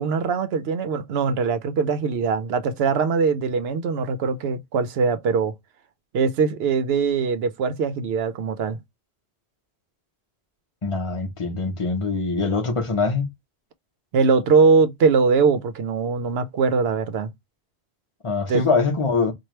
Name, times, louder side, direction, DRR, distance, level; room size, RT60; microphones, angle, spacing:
voice 1, 0.0-5.5 6.1-8.8 14.1-17.3 18.5-18.6, right 5 dB, 75° right, 0.9 m, -21 dB
voice 2, 10.8-13.3 18.2-19.3, left 4 dB, 30° left, 0.9 m, -23 dB
4.4 x 2.3 x 3.1 m
omnidirectional pair, 1.1 m